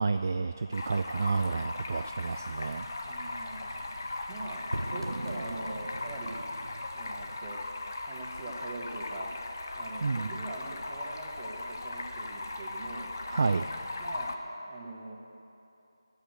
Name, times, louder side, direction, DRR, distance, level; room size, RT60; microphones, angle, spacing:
voice 1, 0.0-2.9 10.0-10.3 13.3-13.7, right 4 dB, 40° right, 9 dB, 0.3 m, -30 dB
Stream, 0.7-14.3, left 2 dB, 50° left, 0.9 m, -38 dB
sound 1, 2.2-7.4, right 1 dB, 85° right, 0.6 m, -42 dB
voice 2, 3.0-3.8 4.3-4.6 4.9-6.4 6.9-9.3 9.7-13.1 14.0-14.3 14.7-15.2, right 2 dB, 20° right, 0 dB, 1.3 m, -42 dB
12.0 x 8.2 x 7.8 m, 2.8 s
figure-of-eight pair, 165°, 2 cm